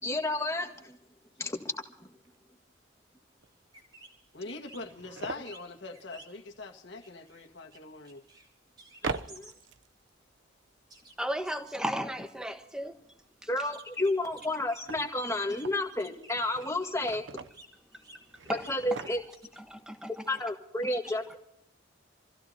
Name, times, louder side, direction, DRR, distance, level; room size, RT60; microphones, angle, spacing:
voice 1, 0.0-1.0 1.4-1.7 9.0-9.5 13.5-17.2 18.7-19.2 20.3-21.4, left 2 dB, 15° left, 1.8 m, -31 dB
sound 1, 1.2-1.3 1.6-1.7 2.2-2.4 3.4-3.5 3.8-3.9 4.4-5.5 7.6-7.7 8.9-10.1 14.1-15.9 16.3-17.6 18.3-19.6 19.9-20.0 20.2-20.4, right 4 dB, 70° right, 0.7 m, -42 dB
sound 2, 3.4-3.5 3.7-4.2 4.5-4.9 5.2-6.6 7.0-7.8 8.0-8.5 8.8-9.7 10.0-10.1 10.9-11.8 13.7-15.7 16.0-16.9 17.2-18.8 19.1-19.7, right 2 dB, 20° right, 2.8 m, -53 dB
voice 2, 4.3-8.2, left 3 dB, 60° left, 1.7 m, -43 dB
voice 3, 11.2-13.0 19.7-20.4, equal, 5° right, 1.2 m, -34 dB
27.5 x 15.5 x 2.8 m
head